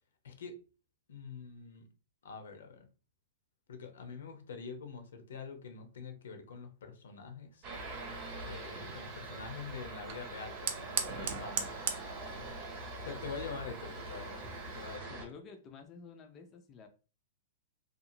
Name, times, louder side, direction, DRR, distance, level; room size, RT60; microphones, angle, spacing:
voice 1, 0.2-0.6 1.1-1.9 2.2-2.9 3.7-7.7 8.4-11.7 12.3-12.5 13.0-15.2, left 5 dB, 85° left, 0.8 m, -45 dB
sound 1, 7.6-15.2, right 2 dB, 30° right, 0.8 m, -43 dB
Fire, 7.7-15.0, right 7 dB, 45° right, 0.5 m, -42 dB
voice 2, 15.1-16.9, left 5 dB, 20° left, 0.3 m, -51 dB
2.7 x 2.4 x 2.7 m
hypercardioid pair, 165°, 0 cm